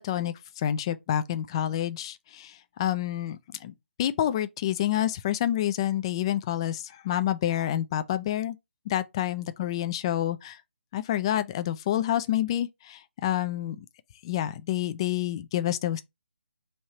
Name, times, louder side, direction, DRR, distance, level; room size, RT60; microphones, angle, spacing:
voice 1, 0.0-3.7 4.0-8.6 8.9-10.6 10.9-13.9 14.2-16.0, left 11 dB, 25° left, 0.4 m, -28 dB
3.2 x 2.7 x 4.3 m
figure-of-eight pair, 145°, 7 cm